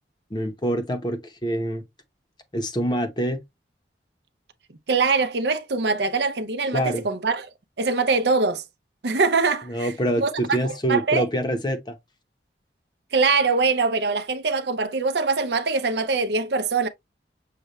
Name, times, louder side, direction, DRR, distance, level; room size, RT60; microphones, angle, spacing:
voice 1, 0.3-1.8 2.5-3.4 6.7-7.0 9.7-12.0, right 1 dB, 25° left, 0.8 m, -25 dB
voice 2, 4.9-7.5 7.8-8.6 9.0-9.9 10.2-10.3 10.9-11.2 13.1-16.9, right 4 dB, 70° right, 0.6 m, -23 dB
6.6 x 2.3 x 3.0 m
head